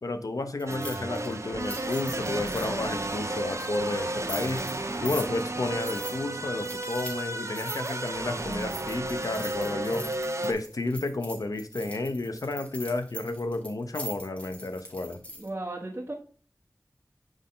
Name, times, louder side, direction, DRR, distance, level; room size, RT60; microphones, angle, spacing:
voice 1, 0.0-4.7 5.0-10.1 10.4-15.2, left 2 dB, 75° left, 9 dB, 0.8 m, -32 dB
sound 1, 0.6-2.7 3.5-3.8 4.2-5.5 5.8-6.2 6.6-7.2 7.6-15.5, equal, 20° left, 2.1 m, -42 dB
sound 2, 0.7-10.5, right 2 dB, 55° right, 1.1 m, -33 dB
voice 2, 15.4-16.1, right 2 dB, 30° right, -6 dB, 1.5 m, -35 dB
6.3 x 5.2 x 3.7 m, 0.42 s
wide cardioid pair, 50°, 6 cm